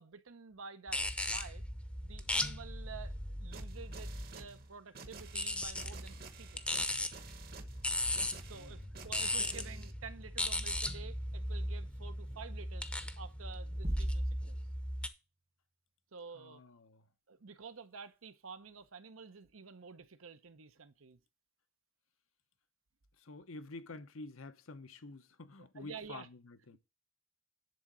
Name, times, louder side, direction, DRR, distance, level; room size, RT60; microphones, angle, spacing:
voice 1, 0.0-1.6 2.0-6.9 8.5-12.9 13.2-14.5 16.1-16.6 17.3-21.2 25.8-26.3, right 5 dB, 85° right, 0.9 m, -50 dB
sound 1, 0.9-4.4 5.2-15.1, left 1 dB, 5° left, 0.7 m, -37 dB
sound 2, 3.5-9.9, right 4 dB, 50° right, 1.1 m, -51 dB
voice 2, 8.5-8.9 16.3-17.1 23.2-26.8, left 3 dB, 85° left, 1.0 m, -50 dB
sound 3, 13.8-14.8, right 1 dB, 30° right, 0.8 m, -39 dB
10.5 x 3.8 x 7.4 m
head